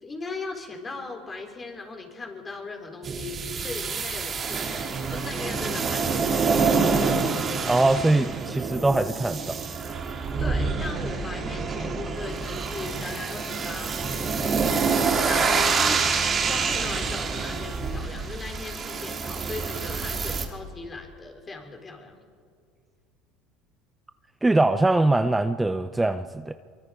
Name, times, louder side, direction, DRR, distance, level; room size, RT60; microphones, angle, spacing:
voice 1, 0.0-6.6 10.4-14.6 15.2-16.0 16.5-22.2, left 3 dB, 25° left, 3 dB, 4.0 m, -38 dB
sound 1, 3.0-20.4, right 5 dB, 35° right, 2.9 m, -27 dB
voice 2, 7.7-9.6 24.4-26.5, right 2 dB, 10° right, 11 dB, 0.6 m, -22 dB
23.5 x 23.0 x 5.0 m, 2.1 s
supercardioid pair, 100°, 0 cm